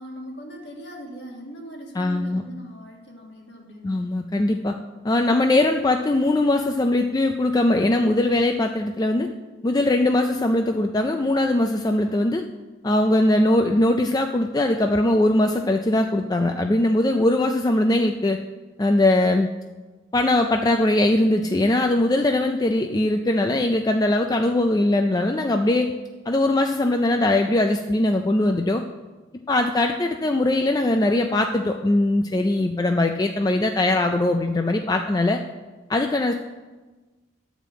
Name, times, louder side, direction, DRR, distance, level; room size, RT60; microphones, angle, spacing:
voice 1, 0.0-4.1, equal, 60° left, 1 dB, 1.8 m, -40 dB
voice 2, 2.0-2.4 3.8-4.8 5.0-9.3 9.6-12.4 12.8-18.4 18.8-19.5 20.1-25.9 26.3-28.8 29.5-35.4 35.9-36.3, left 1 dB, 20° left, 5 dB, 0.4 m, -21 dB
11.5 x 5.1 x 7.5 m, 1.2 s
head